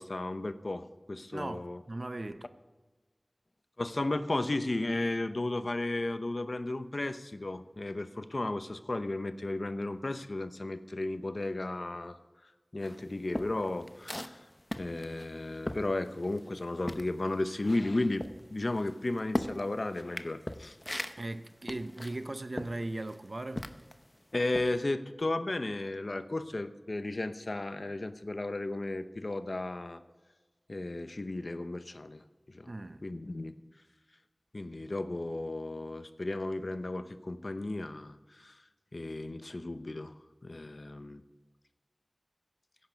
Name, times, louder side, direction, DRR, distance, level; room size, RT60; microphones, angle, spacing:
voice 1, 0.0-1.8 3.8-12.2 12.7-14.4 14.8-20.8 24.3-30.0 30.7-32.2 32.5-32.7 33.0-33.6 34.5-38.5 38.9-40.1 40.4-41.2, left 2 dB, 70° left, 0.8 m, -34 dB
voice 2, 1.3-2.5 21.2-23.7 32.7-33.0, right 2 dB, 65° right, 0.7 m, -38 dB
sound 1, 12.8-16.6 16.8-24.1 24.5-24.8, left 1 dB, 30° left, 0.8 m, -39 dB
15.5 x 10.5 x 5.3 m
wide cardioid pair, 45°, 0 cm